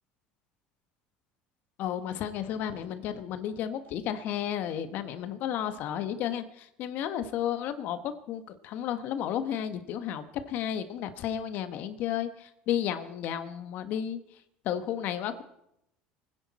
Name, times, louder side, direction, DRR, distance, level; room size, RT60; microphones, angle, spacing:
voice 1, 1.8-14.2 14.6-15.4, left 10 dB, 60° left, 10 dB, 1.3 m, -33 dB
24.0 x 10.0 x 4.3 m, 0.80 s
supercardioid pair, 100°, 3 cm